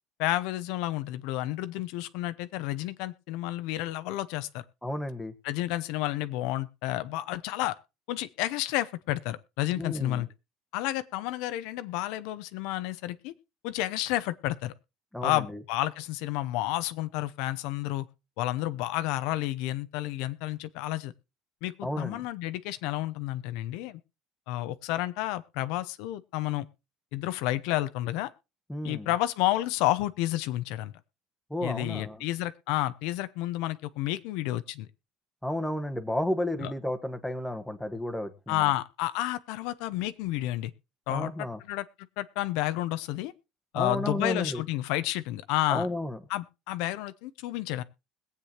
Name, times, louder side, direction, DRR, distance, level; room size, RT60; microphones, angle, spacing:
voice 1, 0.2-4.6 5.4-7.8 8.1-10.3 10.7-13.3 13.6-14.7 15.2-18.1 18.4-21.1 21.6-24.0 24.5-26.7 27.1-28.3 28.8-30.9 31.6-34.9 36.6-36.7 38.5-40.7 41.1-41.3 41.7-41.9 42.2-43.3 43.7-45.9 46.3-47.8, left 15 dB, 75° left, 13 dB, 0.7 m, -30 dB
voice 2, 4.8-5.3 9.8-10.2 15.1-15.6 21.8-22.2 28.7-29.1 31.5-32.2 35.4-38.6 41.1-41.6 43.7-44.6 45.7-46.2, left 1 dB, 5° left, 6 dB, 1.2 m, -32 dB
21.5 x 8.3 x 2.9 m, 0.26 s
cardioid pair, 160°, 0 cm